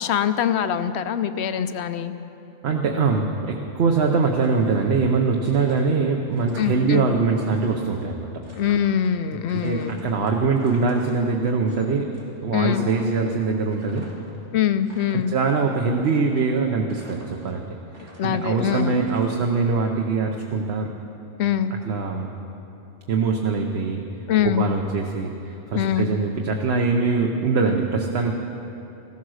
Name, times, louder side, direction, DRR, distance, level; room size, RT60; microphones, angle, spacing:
voice 1, 0.0-2.1 6.6-7.1 8.5-10.2 12.5-12.8 14.5-15.3 18.2-19.0 21.4-21.7 24.3-24.6 25.7-26.1, left 9 dB, 70° left, 11 dB, 0.9 m, -23 dB
voice 2, 2.6-8.3 9.5-12.1 12.4-14.1 15.1-17.6 18.0-20.9 21.8-22.3 23.1-24.0 24.4-28.3, right 4 dB, 65° right, 2 dB, 1.1 m, -23 dB
sound 1, 4.2-5.1 5.4-7.0 7.3-9.1 9.5-11.9 12.1-12.4 12.7-14.4 14.7-15.5 16.0-16.6 16.9-17.6 17.9-19.7, right 1 dB, 85° right, 3.1 m, -48 dB
15.5 x 14.0 x 6.4 m, 2.9 s
omnidirectional pair, 1.2 m